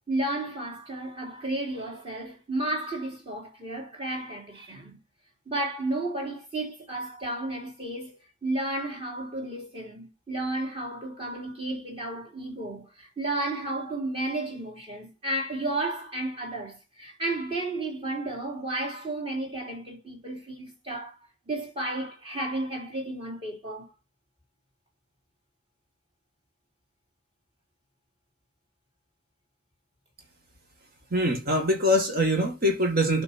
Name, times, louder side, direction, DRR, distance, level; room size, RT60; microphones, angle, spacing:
voice 1, 0.1-5.0 5.4-21.2 21.5-23.9, right 2 dB, 30° right, 3.3 m, -32 dB
voice 2, 31.1-33.2, equal, 50° right, 2.0 m, -23 dB
12.0 x 5.3 x 4.3 m
head